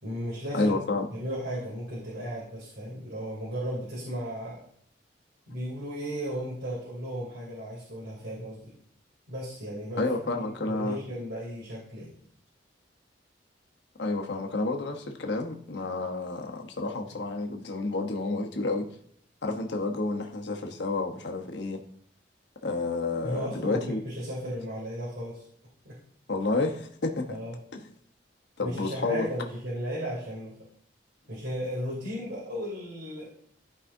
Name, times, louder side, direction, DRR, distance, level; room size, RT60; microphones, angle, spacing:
voice 1, 0.0-0.7 1.1-4.6 5.5-8.7 9.3-10.0 10.3-12.1 23.2-25.4 25.8-25.9 27.3-27.5 28.6-30.5 31.3-33.2, equal, 85° right, -7 dB, 3.0 m, -35 dB
voice 2, 0.5-1.1 10.0-11.0 14.0-18.8 19.4-21.8 22.6-24.0 26.3-27.4 28.6-29.3, left 3 dB, 70° left, 3 dB, 1.0 m, -30 dB
13.5 x 4.9 x 2.7 m, 0.64 s
head